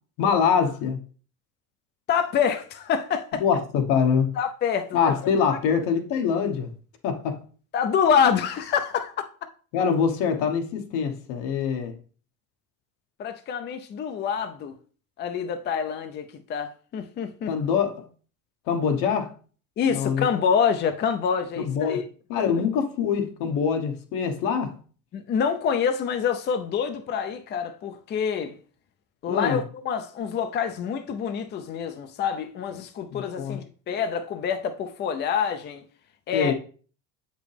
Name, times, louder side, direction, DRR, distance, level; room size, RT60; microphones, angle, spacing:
voice 1, 0.2-1.0 3.4-4.4 4.9-6.7 7.0-7.4 9.7-12.0 17.5-18.0 18.7-19.3 19.9-20.3 21.6-22.0 22.3-24.7 29.3-29.6 33.1-33.6 36.3-36.5, left 6 dB, 75° left, 1.2 m, -24 dB
voice 2, 2.1-3.4 4.4-5.6 7.7-9.3 13.2-14.7 15.2-17.5 19.8-22.0 22.4-22.5 25.1-28.6 29.2-35.8 36.3-36.5, left 7 dB, 30° left, 0.5 m, -26 dB
7.4 x 5.2 x 3.3 m
cardioid pair, 135°, 34 cm